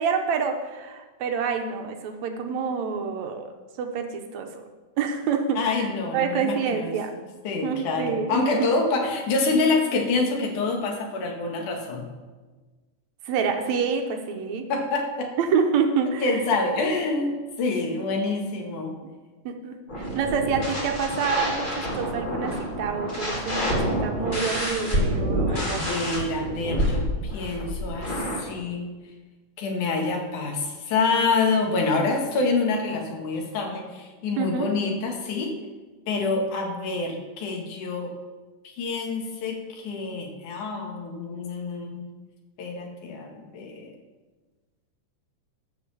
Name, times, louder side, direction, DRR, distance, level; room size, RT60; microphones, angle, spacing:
voice 1, 0.0-3.5 3.8-4.7 5.0-5.9 6.1-7.2 7.6-8.7 13.3-14.7 15.4-16.4 19.5-26.1 34.4-34.7, right 6 dB, 70° right, 5 dB, 2.1 m, -27 dB
voice 2, 5.6-6.9 7.4-12.1 14.7-15.3 16.2-18.9 25.5-28.8 29.6-35.6 36.1-38.1 38.8-42.0 42.6-44.0, left 3 dB, 75° left, 2 dB, 3.0 m, -27 dB
sound 1, 19.9-28.4, equal, 20° left, 1.5 m, -28 dB
12.5 x 5.4 x 6.9 m, 1.3 s
omnidirectional pair, 3.7 m